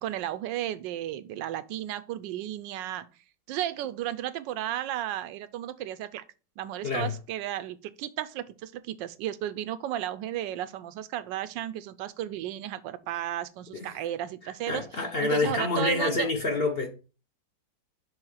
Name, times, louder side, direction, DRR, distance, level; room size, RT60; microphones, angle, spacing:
voice 1, 0.0-3.1 3.5-6.2 6.6-16.3, right 12 dB, 90° right, 1.3 m, -34 dB
voice 2, 14.7-16.9, left 3 dB, 45° left, 0.8 m, -27 dB
6.3 x 3.5 x 4.8 m
omnidirectional pair, 1.9 m